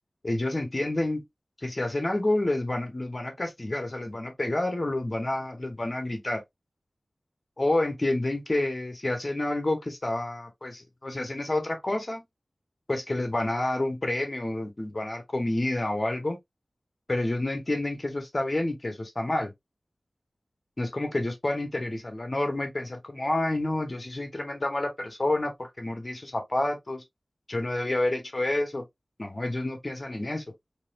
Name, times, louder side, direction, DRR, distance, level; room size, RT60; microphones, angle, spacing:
voice 1, 0.2-1.2 1.6-6.4 7.6-12.2 12.9-16.4 17.1-19.5 20.8-27.0 27.5-28.8 29.2-30.4, left 1 dB, 40° left, 1.4 m, -29 dB
4.2 x 3.1 x 2.6 m
wide cardioid pair, 75°, 0 cm